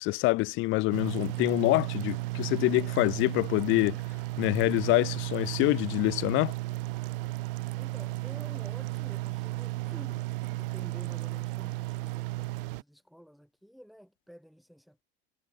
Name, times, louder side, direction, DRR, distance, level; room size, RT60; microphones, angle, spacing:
voice 1, 0.0-4.0 4.4-6.5, left 22 dB, 40° left, 0.6 m, -26 dB
sound 1, 0.9-12.8, right 21 dB, 60° right, 0.7 m, -34 dB
voice 2, 7.8-10.3 10.6-15.0, equal, ahead, 4.4 m, -51 dB
figure-of-eight pair, 75°, 31 cm